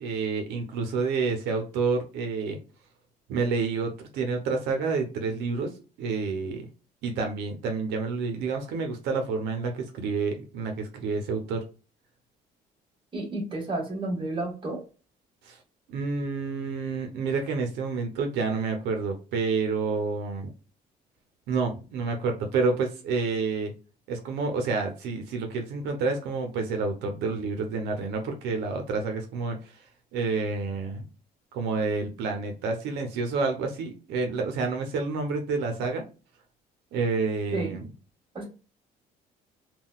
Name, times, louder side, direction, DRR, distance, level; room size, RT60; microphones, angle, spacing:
voice 1, 0.0-2.6 3.3-5.7 6.0-6.7 7.0-11.6 15.4-15.6 15.9-20.5 21.5-23.7 24.1-29.9 30.1-31.1 31.5-36.0 36.9-37.8, right 4 dB, 85° right, 4 dB, 0.7 m, -29 dB
voice 2, 13.1-14.8 37.5-37.8 38.3-38.4, right 2 dB, 30° right, 0 dB, 1.4 m, -31 dB
3.7 x 2.3 x 2.2 m, 0.34 s
cardioid pair, 110°, 17 cm